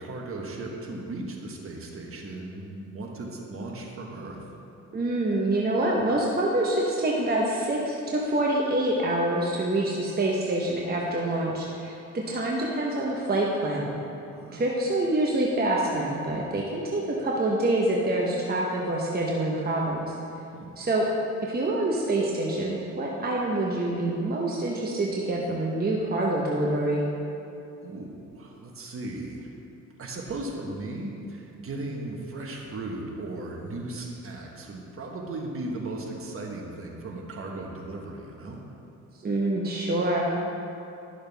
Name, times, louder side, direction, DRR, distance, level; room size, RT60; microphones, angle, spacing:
voice 1, 0.0-4.4 14.3-14.6 20.5-20.7 27.8-29.5 30.0-38.6, right 2 dB, 45° right, 0 dB, 1.3 m, -36 dB
voice 2, 4.9-13.9 14.5-20.1 20.8-21.0 21.4-27.0 39.2-40.3, right 1 dB, 30° right, -3 dB, 1.0 m, -26 dB
11.0 x 6.5 x 3.5 m, 2.7 s
cardioid pair, 90°, 30 cm